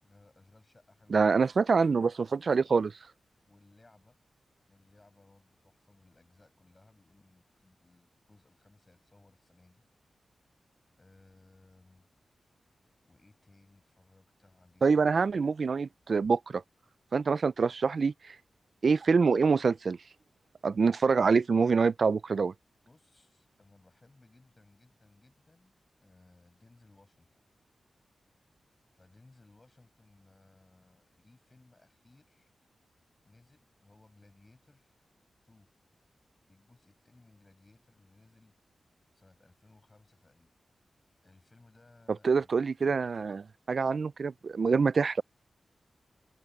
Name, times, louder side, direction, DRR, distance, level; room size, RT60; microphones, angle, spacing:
voice 1, 0.0-1.3 3.5-4.2 4.7-9.9 11.0-12.1 13.0-15.1 22.9-27.4 28.9-32.5 33.2-34.9 35.4-35.7 36.5-38.6 39.1-40.5 41.2-42.5, left 2 dB, 25° left, 5.9 m, -62 dB
voice 2, 1.1-2.9 14.8-16.6 17.1-18.4 18.8-20.0 20.6-22.5 42.2-45.2, right 5 dB, 50° right, 0.3 m, -26 dB
open air
wide cardioid pair, 165°, 0 cm